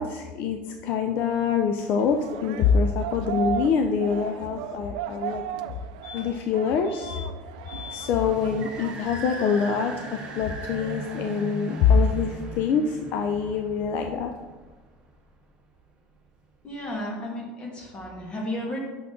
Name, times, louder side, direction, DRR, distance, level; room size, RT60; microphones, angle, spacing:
voice 1, 0.0-5.4 6.1-7.1 7.9-9.9 10.3-14.3, left 6 dB, 55° left, 5 dB, 0.5 m, -25 dB
sound 1, 1.9-12.1, right 11 dB, 85° right, 0.4 m, -37 dB
sound 2, 5.7-5.8 6.0-6.5 6.8-7.3 7.6-8.1 10.5-10.6 10.8-10.9, left 8 dB, 75° left, 2.0 m, -42 dB
sound 3, 7.8-15.1, right 2 dB, 25° right, 2.0 m, -40 dB
voice 2, 16.6-18.8, left 1 dB, 30° left, 0 dB, 1.7 m, -33 dB
6.1 x 5.9 x 3.7 m, 1.3 s
supercardioid pair, 130°, 4 cm